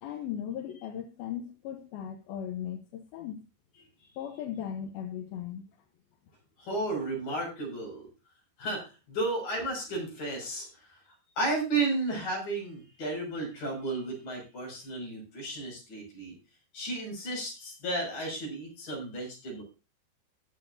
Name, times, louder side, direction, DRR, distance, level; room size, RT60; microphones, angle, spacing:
voice 1, 0.0-3.4 4.2-5.7, left 9 dB, 70° left, 4 dB, 2.7 m, -37 dB
voice 2, 6.6-8.1 8.6-10.7 11.4-16.3 16.7-19.6, right 2 dB, 55° left, -1 dB, 7.7 m, -33 dB
22.0 x 7.5 x 2.7 m, 0.29 s
omnidirectional pair, 4.8 m